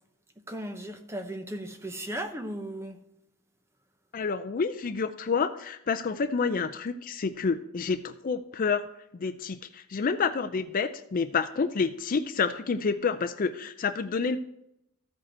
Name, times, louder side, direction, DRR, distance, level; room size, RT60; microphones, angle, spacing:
voice 1, 0.5-3.0, right 1 dB, 10° right, 0.8 m, -36 dB
voice 2, 4.1-8.9 9.2-14.4, left 5 dB, 40° left, 0.4 m, -29 dB
14.0 x 5.1 x 4.4 m
head